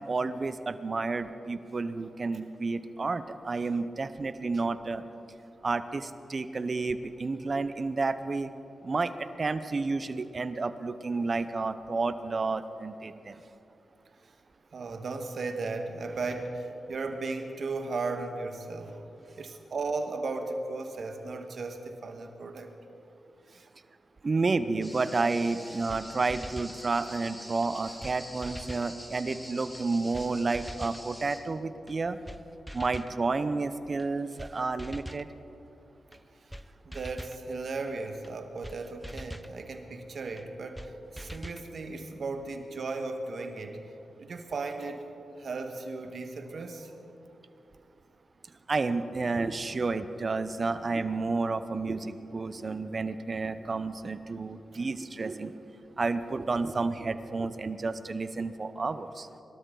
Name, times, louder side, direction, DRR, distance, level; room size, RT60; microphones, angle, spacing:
voice 1, 0.0-5.0 5.6-8.5 8.8-13.4 24.2-32.2 32.7-35.3 48.7-55.6 56.0-59.3, right 3 dB, 50° right, 12 dB, 0.8 m, -31 dB
voice 2, 14.7-19.1 19.4-22.7 36.8-43.8 44.2-45.1 45.4-46.9, right 3 dB, 65° right, 5 dB, 1.5 m, -36 dB
sound 1, 24.8-31.4, equal, 15° left, 3.4 m, -46 dB
sound 2, 25.5-25.6 25.9-26.0 26.3-26.8 27.6-27.7 28.0-28.2 28.4-28.9 29.7-29.8 30.1-30.3 30.5-31.0 31.9-32.0 32.3-32.4 32.7-33.2 34.0-34.1 34.4-34.5 34.8-35.3 36.1-36.2 36.5-36.6 36.9-37.4 38.2-38.3 38.6-38.8 39.0-39.5 40.4-40.5 40.8-40.9 41.2-41.7, equal, ahead, 0.7 m, -42 dB
22.5 x 13.0 x 3.9 m, 2.9 s
supercardioid pair, 45°, 0 cm